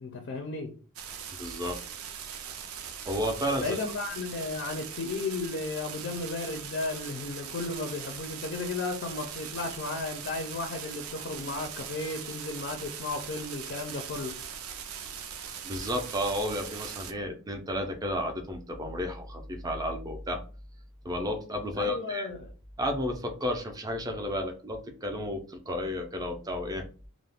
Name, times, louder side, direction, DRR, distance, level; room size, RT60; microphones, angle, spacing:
voice 1, 0.0-0.8 3.6-14.4 21.8-22.5, left 3 dB, 50° left, 0.4 m, -34 dB
sound 1, 1.0-17.1, right 8 dB, 75° right, 0.4 m, -41 dB
voice 2, 1.4-1.8 3.1-3.8 15.6-20.4 21.0-22.3 22.8-26.8, equal, 15° right, 0.4 m, -32 dB
2.3 x 2.0 x 3.4 m
head